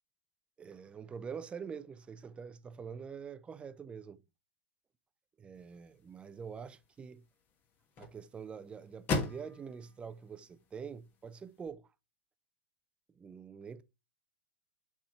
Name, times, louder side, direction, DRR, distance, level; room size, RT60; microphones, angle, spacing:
voice 1, 0.6-4.2 5.4-7.2 8.0-11.9 13.1-13.8, right 6 dB, 20° right, 0.6 m, -45 dB
sound 1, 5.5-11.7, left 4 dB, 35° left, 1.3 m, -42 dB
7.5 x 3.6 x 4.4 m
hypercardioid pair, 110°, 6 cm